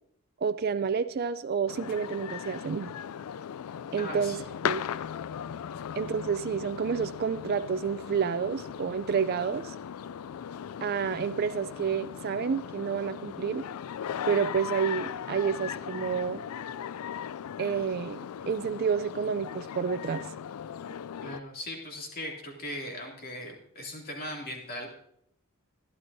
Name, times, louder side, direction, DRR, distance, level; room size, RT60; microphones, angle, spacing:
voice 1, 0.4-2.9 3.9-4.4 4.6-4.8 6.0-9.7 10.8-13.7 14.3-16.4 17.6-18.2 18.5-20.3, right 6 dB, 45° right, 11 dB, 0.3 m, -29 dB
sound 1, 1.7-21.4, left 8 dB, 80° left, 0.4 m, -38 dB
voice 2, 4.0-4.5 21.2-24.9, left 1 dB, 40° left, 0 dB, 2.6 m, -39 dB
21.0 x 11.5 x 2.7 m, 0.74 s
head